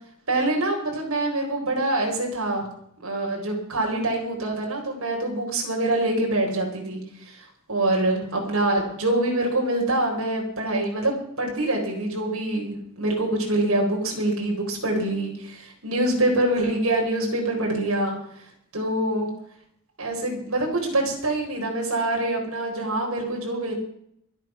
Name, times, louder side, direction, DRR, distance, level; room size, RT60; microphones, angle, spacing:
voice 1, 0.3-2.7 3.0-18.2 18.7-19.3 20.0-23.7, right 1 dB, 85° right, 0 dB, 4.6 m, -25 dB
23.5 x 8.1 x 5.8 m, 0.71 s
head